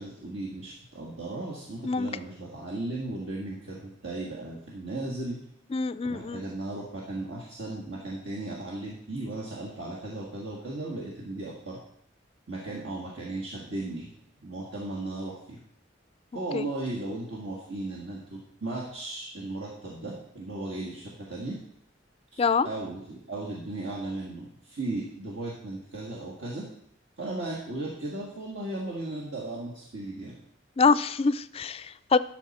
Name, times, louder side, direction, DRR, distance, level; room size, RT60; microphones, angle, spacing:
voice 1, 0.0-5.4 6.0-11.8 12.5-14.1 14.4-15.6 16.3-21.6 22.3-26.7 27.2-30.3, right 2 dB, 65° right, -4 dB, 1.8 m, -36 dB
voice 2, 5.7-6.4 16.5-16.7 22.4-22.7 30.8-32.2, left 4 dB, 30° left, 15 dB, 0.3 m, -25 dB
12.0 x 6.3 x 4.2 m, 0.72 s
head